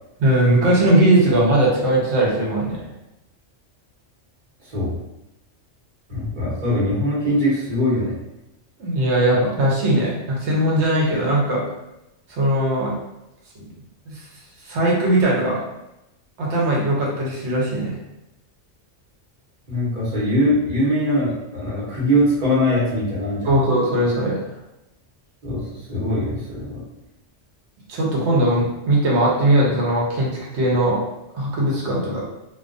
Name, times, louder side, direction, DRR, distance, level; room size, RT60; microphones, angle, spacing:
voice 1, 0.2-2.9 8.8-11.6 12.3-12.9 13.6-13.7 14.1-14.3 14.6-15.6 16.4-18.0 23.4-24.4 27.9-31.0 31.3-32.3, right 1 dB, 70° right, -4 dB, 1.0 m, -19 dB
voice 2, 4.6-4.9 6.1-8.1 19.7-23.5 25.4-26.8, equal, 40° right, -8 dB, 1.1 m, -22 dB
2.4 x 2.3 x 2.5 m, 0.92 s
omnidirectional pair, 1.3 m